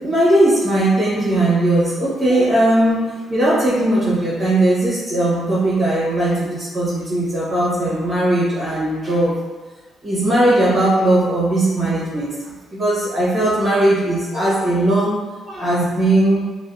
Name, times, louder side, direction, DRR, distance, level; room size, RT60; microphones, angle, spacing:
voice 1, 0.0-9.3 10.0-12.3 12.7-15.1 15.5-16.4, right 1 dB, 35° right, -9 dB, 0.8 m, -18 dB
2.6 x 2.1 x 2.3 m, 1.3 s
cardioid pair, 90°, 0 cm